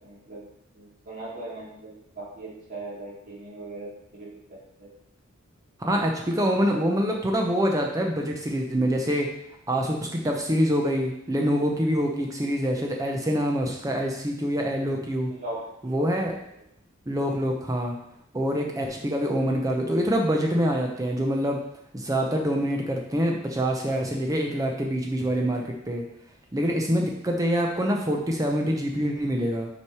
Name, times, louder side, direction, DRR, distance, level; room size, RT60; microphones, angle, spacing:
voice 1, 0.0-0.5 0.7-4.9 15.3-16.1, right 2 dB, 45° right, -8 dB, 2.6 m, -39 dB
voice 2, 5.8-9.3 9.7-15.3 15.8-16.3 17.1-18.0 18.3-21.6 21.9-26.0 26.5-29.7, equal, 15° right, 1 dB, 0.6 m, -25 dB
5.8 x 4.7 x 4.7 m, 0.76 s
head